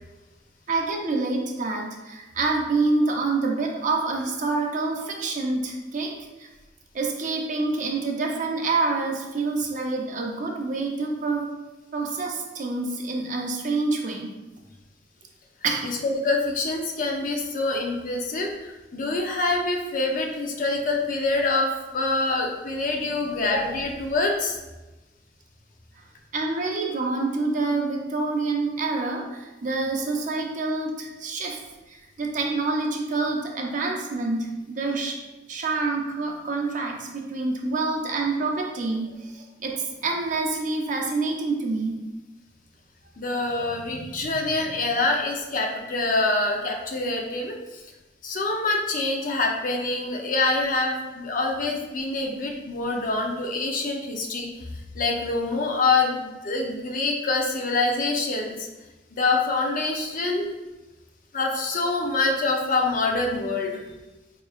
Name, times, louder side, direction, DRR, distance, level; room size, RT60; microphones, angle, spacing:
voice 1, 0.7-6.1 6.4-6.5 6.9-11.5 11.9-14.3 15.6-15.9 26.3-31.6 31.9-35.2 35.5-41.9, right 3 dB, 45° right, 1 dB, 0.6 m, -27 dB
voice 2, 15.8-24.6 43.2-47.8 48.2-58.7 59.1-60.5 61.3-63.8, left 3 dB, 50° left, 1 dB, 0.6 m, -25 dB
4.8 x 3.0 x 2.4 m, 1.1 s
head